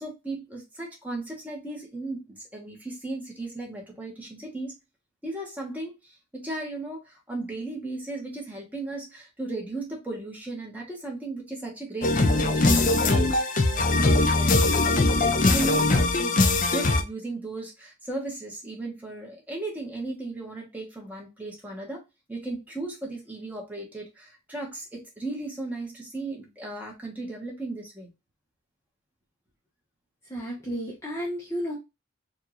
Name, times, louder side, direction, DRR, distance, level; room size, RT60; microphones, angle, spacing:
voice 1, 0.0-4.7 5.2-15.1 15.5-22.0 22.3-28.1, right 2 dB, 10° right, -1 dB, 1.3 m, -36 dB
sound 1, 12.0-17.0, left 2 dB, 40° left, 0.5 m, -21 dB
voice 2, 30.3-31.8, equal, 15° left, -4 dB, 0.9 m, -32 dB
4.5 x 2.6 x 3.0 m, 0.24 s
head